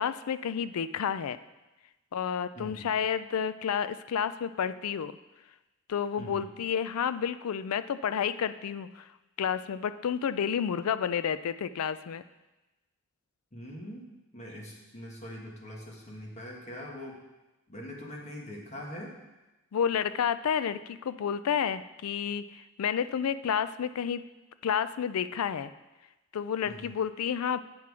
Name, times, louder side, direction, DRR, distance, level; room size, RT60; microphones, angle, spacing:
voice 1, 0.0-1.4 2.1-5.1 5.9-9.1 9.4-12.2 19.7-24.2 24.6-25.7 26.3-27.6, left 7 dB, 85° left, 13 dB, 0.4 m, -30 dB
voice 2, 2.5-2.9 6.2-6.5 13.5-17.2 17.7-19.2 26.6-26.9, equal, 30° left, -2 dB, 1.5 m, -43 dB
8.8 x 5.9 x 4.8 m, 1.1 s
head